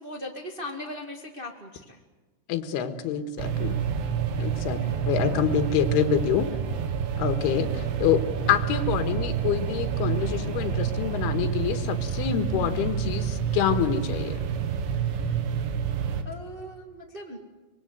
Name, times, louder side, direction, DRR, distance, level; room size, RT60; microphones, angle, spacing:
voice 1, 0.0-2.0 4.7-5.0 16.2-17.4, left 1 dB, 35° right, 2 dB, 0.8 m, -39 dB
voice 2, 2.5-3.8 4.4-4.8 5.1-6.5 7.2-8.2 8.5-14.4, left 9 dB, 75° left, 8 dB, 3.4 m, -26 dB
sound 1, 3.4-16.2, right 8 dB, 85° right, 3.8 m, -28 dB
25.0 x 21.5 x 8.1 m, 1.2 s
omnidirectional pair, 4.7 m